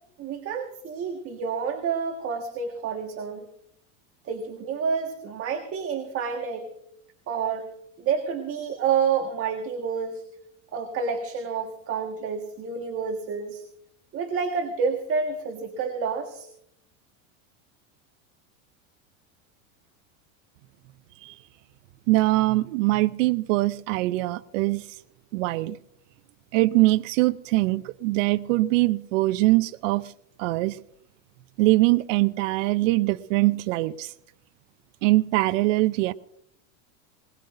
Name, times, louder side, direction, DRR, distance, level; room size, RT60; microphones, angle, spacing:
voice 1, 0.2-3.5 4.2-6.7 7.3-7.7 8.0-10.2 10.7-13.6 14.1-16.5, right 6 dB, 35° right, 1.6 m, -29 dB
voice 2, 22.1-24.9 25.3-25.8 26.5-30.1 30.4-30.8 31.6-34.1 35.0-36.1, right 19 dB, 75° right, 0.6 m, -22 dB
21.0 x 20.5 x 2.6 m
supercardioid pair, 135°, 38 cm